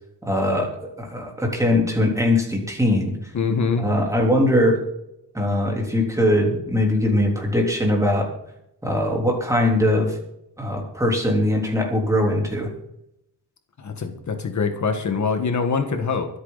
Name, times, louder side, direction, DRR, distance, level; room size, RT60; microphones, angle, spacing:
voice 1, 0.2-0.7 1.0-3.2 3.8-4.8 5.3-8.3 8.8-10.2 10.6-12.7, left 1 dB, 5° right, 0 dB, 3.5 m, -21 dB
voice 2, 3.3-3.9 13.8-16.3, left 5 dB, 40° left, 6 dB, 1.6 m, -24 dB
24.5 x 8.5 x 4.1 m, 0.81 s
wide cardioid pair, 145°, 43 cm